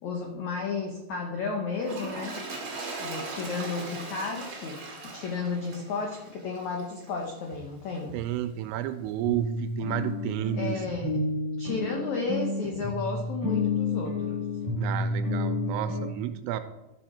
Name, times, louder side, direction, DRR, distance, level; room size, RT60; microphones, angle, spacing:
voice 1, 0.0-2.4 3.0-8.1 10.6-11.1 11.6-14.4, left 4 dB, 85° left, 1 dB, 1.6 m, -33 dB
Toilet flush, 1.8-7.2 7.9-8.0, right 3 dB, 50° right, 1.5 m, -39 dB
sound 1, 7.5-7.6 8.1-8.2 8.6-8.7 9.2-16.0, left 2 dB, 10° left, 2.9 m, -30 dB
voice 2, 8.1-10.8 14.8-16.6, right 12 dB, 80° right, 10 dB, 2.5 m, -31 dB
12.5 x 7.4 x 4.4 m, 0.97 s
omnidirectional pair, 5.0 m